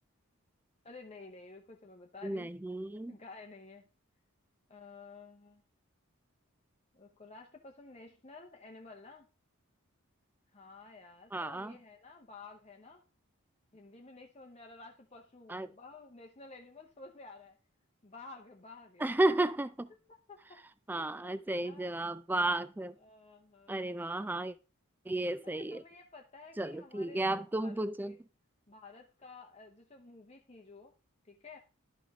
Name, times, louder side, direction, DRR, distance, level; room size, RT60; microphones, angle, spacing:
voice 1, 0.8-2.5 3.1-3.9 4.7-5.6 6.9-9.3 10.5-13.0 13.7-17.6 18.0-19.2 20.3-20.6 21.0-21.9 23.0-24.0 25.6-28.2 28.7-30.9 31.2-31.6, left 3 dB, 30° left, 0.8 m, -52 dB
voice 2, 2.2-3.2 11.3-11.8 15.5-15.7 19.0-19.9 20.9-23.0 23.7-24.5 25.1-25.8 26.6-28.2, right 2 dB, 10° right, 0.3 m, -33 dB
11.5 x 5.3 x 3.5 m
head